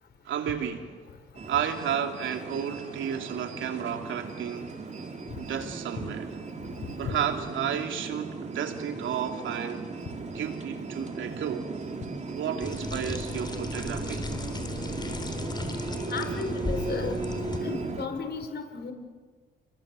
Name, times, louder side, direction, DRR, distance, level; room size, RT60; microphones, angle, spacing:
voice 1, 0.2-0.9 1.5-4.8 5.3-6.2 7.0-9.9 10.3-11.7 12.3-14.3, right 8 dB, 75° right, 4 dB, 3.0 m, -32 dB
sound 1, 1.3-18.1, right 4 dB, 35° right, 3.6 m, -37 dB
voice 2, 6.6-7.2 16.1-17.2 17.6-18.9, left 5 dB, 55° left, 6 dB, 4.8 m, -35 dB
sound 2, 12.6-17.6, left 3 dB, 20° left, 4.1 m, -35 dB
29.5 x 23.0 x 7.8 m, 1.5 s
cardioid pair, 90°, 20 cm